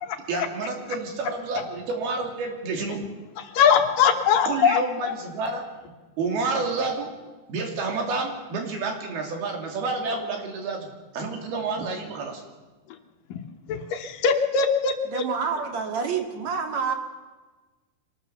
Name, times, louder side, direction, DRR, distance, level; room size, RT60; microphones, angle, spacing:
voice 1, 0.3-3.0 4.5-5.7 6.2-7.1 7.5-10.9 11.1-12.4, right 3 dB, 80° right, 3 dB, 4.8 m, -29 dB
voice 2, 3.5-5.1 13.3-13.4 13.7-15.2, left 7 dB, 70° left, 6 dB, 2.7 m, -21 dB
voice 3, 15.0-16.9, right 6 dB, 50° right, 4 dB, 3.2 m, -28 dB
24.0 x 19.5 x 7.0 m, 1.3 s
omnidirectional pair, 4.4 m